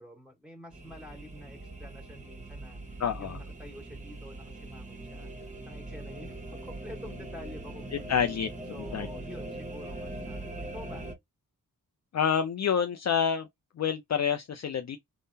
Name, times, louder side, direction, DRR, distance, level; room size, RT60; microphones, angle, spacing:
voice 1, 0.0-8.1 8.7-11.1, left 1 dB, 5° right, 1.7 m, -48 dB
sound 1, 0.7-11.1, right 2 dB, 20° right, 1.2 m, -41 dB
voice 2, 3.0-3.4 8.1-8.5 8.9-9.1 12.1-13.5 13.8-15.0, left 7 dB, 50° left, 0.5 m, -27 dB
3.6 x 2.1 x 2.6 m
wide cardioid pair, 100°, 35 cm